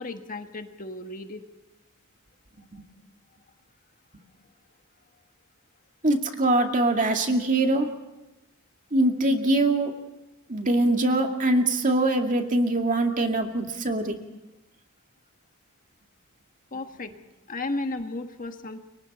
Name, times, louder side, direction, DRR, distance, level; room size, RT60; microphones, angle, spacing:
voice 1, 0.0-1.4 16.7-17.1 17.5-18.8, left 2 dB, 40° left, 6 dB, 1.5 m, -34 dB
voice 2, 6.0-7.9 8.9-9.9 10.5-14.1, right 2 dB, 35° right, 4 dB, 2.3 m, -23 dB
30.0 x 24.0 x 4.3 m, 1.0 s
head